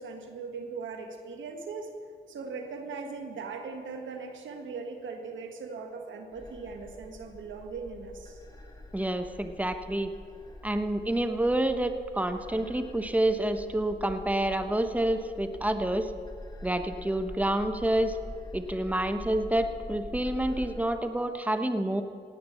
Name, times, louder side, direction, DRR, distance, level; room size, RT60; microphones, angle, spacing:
voice 1, 0.0-1.9 2.3-8.4, right 4 dB, 80° right, 4 dB, 1.5 m, -39 dB
sound 1, 6.3-20.8, left 2 dB, 20° left, 2.4 m, -45 dB
voice 2, 8.9-10.1 10.6-16.1 16.6-18.2 18.5-22.0, right 1 dB, 10° right, 8 dB, 1.2 m, -28 dB
17.5 x 9.1 x 5.7 m, 2.4 s
supercardioid pair, 45°, 19 cm